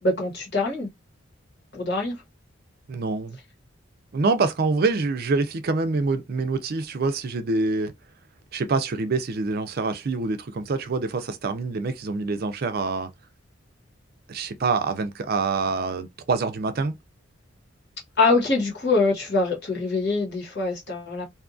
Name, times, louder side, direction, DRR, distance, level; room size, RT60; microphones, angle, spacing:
voice 1, 0.0-0.9 1.7-2.1 18.2-21.3, left 3 dB, 60° left, 1.3 m, -24 dB
voice 2, 2.9-3.4 4.1-7.9 8.5-13.1 14.3-17.0, right 3 dB, 50° right, 0.4 m, -26 dB
2.6 x 2.4 x 2.5 m
head